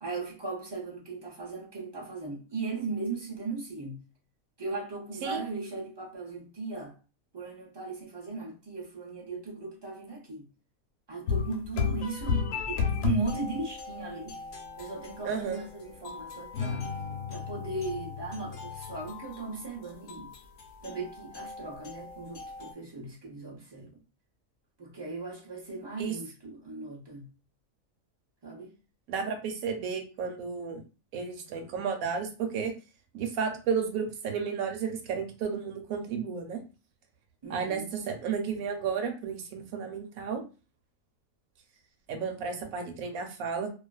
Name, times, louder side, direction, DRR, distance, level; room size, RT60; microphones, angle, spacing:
voice 1, 0.0-4.0 4.6-6.9 7.3-10.5 11.1-14.3 14.8-16.9 17.3-20.3 20.8-24.0 24.8-27.3 28.4-28.7 37.4-37.9, right 3 dB, 35° right, 0.4 m, -37 dB
sound 1, 11.3-22.7, left 6 dB, 90° left, 1.0 m, -35 dB
sound 2, 14.0-15.2 15.5-15.7 16.5-19.1, left 7 dB, 60° left, 0.8 m, -40 dB
voice 2, 15.2-15.6 26.0-26.2 29.1-30.8 31.1-32.7 33.1-36.6 37.5-40.4 42.1-43.7, right 6 dB, 90° right, 1.1 m, -32 dB
2.5 x 2.3 x 2.3 m
omnidirectional pair, 1.4 m